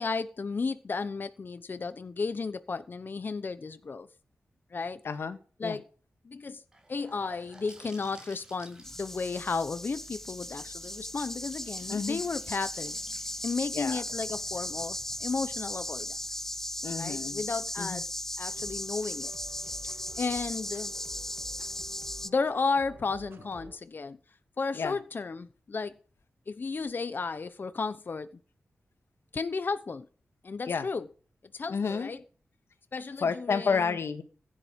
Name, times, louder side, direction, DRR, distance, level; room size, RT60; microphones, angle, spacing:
voice 1, 0.0-4.1 4.7-5.0 5.6-5.9 6.2-6.6 6.9-13.0 13.4-16.4 17.0-18.1 18.4-19.3 19.6-19.7 20.2-20.9 22.2-24.2 24.6-25.9 26.5-28.3 29.3-30.1 30.4-31.0 31.5-32.2 32.9-34.0, left 4 dB, 50° left, 1.0 m, -33 dB
voice 2, 5.0-5.8 11.9-12.2 13.7-14.0 16.8-17.4 17.8-18.0 24.7-25.0 30.7-30.9 31.7-32.1 33.2-34.2, left 5 dB, 75° left, 1.9 m, -31 dB
Gurgling / Sink (filling or washing) / Bathtub (filling or washing), 6.7-16.5, right 1 dB, 15° right, 7.5 m, -55 dB
sound 1, 8.8-22.3, left 1 dB, 10° left, 0.8 m, -37 dB
sound 2, 18.5-23.8, right 4 dB, 60° right, 2.7 m, -51 dB
16.0 x 9.7 x 5.3 m
wide cardioid pair, 100°, 4 cm